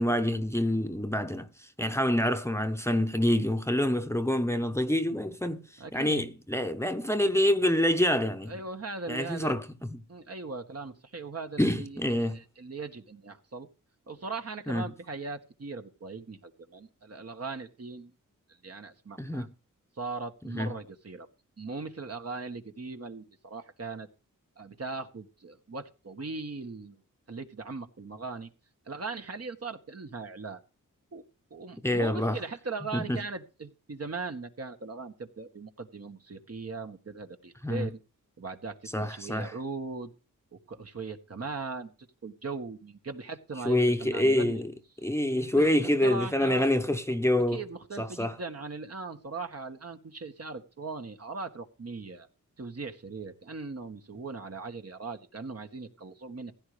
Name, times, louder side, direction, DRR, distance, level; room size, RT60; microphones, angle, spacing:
voice 1, 0.0-5.6 5.9-8.6 9.1-9.6 9.9-10.0 11.6-12.4 14.7-14.8 19.2-19.5 20.6-20.7 31.8-32.4 32.9-33.2 37.6-37.9 38.9-39.5 43.6-44.7 45.0-47.6 48.0-48.3, left 1 dB, 10° left, 1.1 m, -26 dB
voice 2, 5.8-6.2 8.5-9.5 10.1-13.7 14.1-18.1 18.6-19.5 20.0-21.3 21.6-24.1 24.6-27.0 27.3-28.5 28.9-30.6 31.1-31.2 31.5-38.0 38.4-40.1 40.7-41.9 42.2-44.6 45.5-46.7 47.5-52.3 52.6-56.5, right 4 dB, 45° right, 1.5 m, -39 dB
16.0 x 9.8 x 3.4 m
cardioid pair, 65°, 33 cm